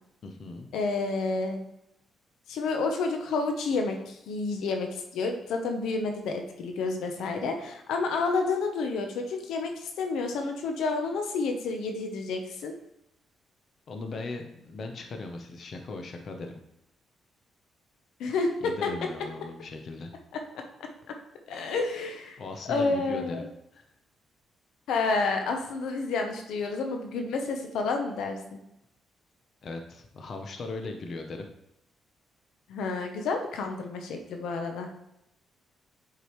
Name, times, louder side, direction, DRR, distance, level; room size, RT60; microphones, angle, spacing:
voice 1, 0.2-0.7 13.9-16.5 18.6-20.1 22.4-23.4 23.7-23.8 29.6-31.4, left 3 dB, 50° left, 4 dB, 0.8 m, -38 dB
voice 2, 0.7-1.6 2.5-12.7 18.2-18.9 20.8-20.9 21.5-22.4 22.7-23.5 24.9-28.6 32.7-34.9, left 3 dB, 85° left, 4 dB, 0.8 m, -30 dB
8.1 x 4.9 x 3.1 m, 0.84 s
cardioid pair, 115°, 0 cm